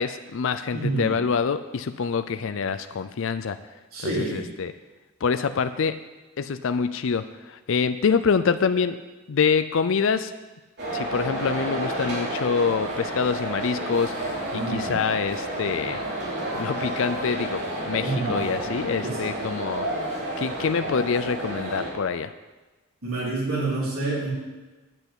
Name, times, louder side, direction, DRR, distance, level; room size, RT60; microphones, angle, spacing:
voice 1, 0.0-3.6 4.0-4.7 5.2-6.0 6.4-9.0 9.3-10.3 10.9-16.0 16.5-19.9 20.4-22.3, left 5 dB, 65° left, 10 dB, 0.4 m, -26 dB
voice 2, 0.7-1.1 3.9-4.5 14.5-14.9 18.0-18.5 19.0-19.3 23.0-24.3, right 2 dB, 80° right, -7 dB, 4.0 m, -28 dB
sound 1, 10.8-21.9, right 1 dB, 50° right, 3.5 m, -30 dB
9.0 x 8.2 x 8.0 m, 1.2 s
head